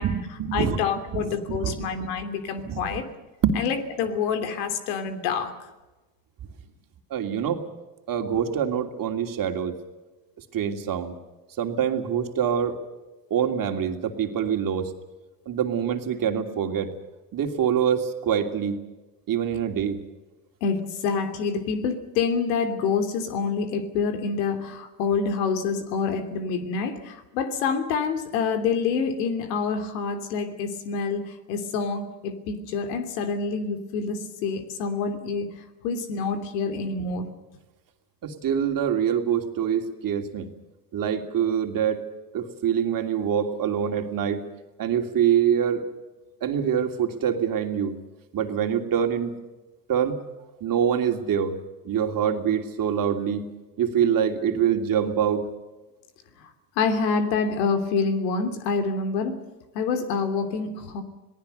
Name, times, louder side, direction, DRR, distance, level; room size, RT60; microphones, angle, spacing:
voice 1, 0.0-0.8 1.1-1.8 2.6-3.0 3.4-3.6 7.1-7.6 8.1-9.7 10.5-11.1 11.6-12.8 13.3-14.9 15.5-16.9 17.3-18.8 19.3-20.0 38.2-40.5 40.9-42.0 42.3-44.4 44.8-45.8 46.4-47.9 48.3-49.4 49.9-50.2 50.6-51.5 51.8-53.5 53.8-55.4, right 8 dB, 40° right, 5 dB, 2.9 m, -25 dB
voice 2, 0.5-3.1 3.6-5.5 20.6-35.5 35.8-37.2 56.8-59.4 59.7-61.0, left 5 dB, 75° left, 8 dB, 3.1 m, -27 dB
26.5 x 19.0 x 6.8 m, 1.1 s
hypercardioid pair, 90°, 49 cm